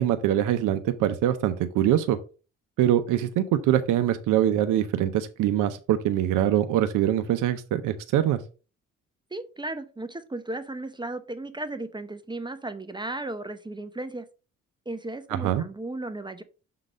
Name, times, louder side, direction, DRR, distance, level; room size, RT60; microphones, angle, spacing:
voice 1, 0.0-2.2 2.8-8.4 15.3-15.6, right 11 dB, 85° right, 9 dB, 0.7 m, -23 dB
voice 2, 9.3-14.2 14.9-16.4, right 2 dB, 15° right, 10 dB, 0.8 m, -35 dB
6.5 x 3.9 x 4.9 m, 0.34 s
cardioid pair, 90°, 30 cm